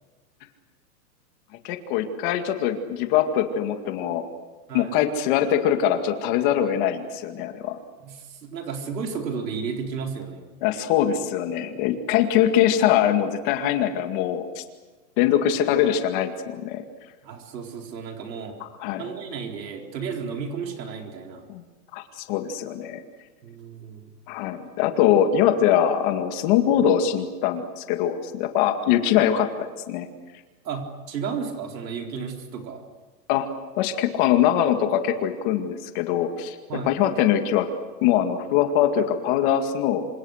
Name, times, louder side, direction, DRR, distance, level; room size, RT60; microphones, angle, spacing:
voice 1, 1.6-4.2 4.7-7.8 10.6-14.6 15.2-16.8 18.6-19.0 21.5-21.6 21.9-23.0 24.3-30.1 33.3-33.5 33.8-36.6 36.9-37.7 38.0-40.1, left 10 dB, 30° left, 6 dB, 2.1 m, -22 dB
voice 2, 8.0-10.5 17.2-18.7 19.0-21.5 23.4-24.1 30.6-32.8 36.7-36.9, right 6 dB, 85° right, 2 dB, 4.2 m, -33 dB
27.0 x 26.5 x 6.6 m, 1.3 s
supercardioid pair, 170°, 49 cm